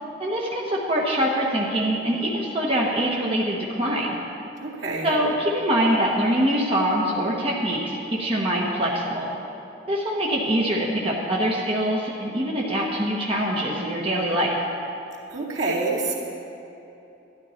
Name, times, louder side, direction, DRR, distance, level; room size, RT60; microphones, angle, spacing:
voice 1, 0.2-4.2 5.0-9.3 9.9-14.5, equal, 30° right, -4 dB, 1.3 m, -24 dB
voice 2, 4.6-5.2 15.3-16.1, right 3 dB, 75° right, -5 dB, 2.3 m, -27 dB
12.5 x 11.5 x 4.4 m, 2.9 s
head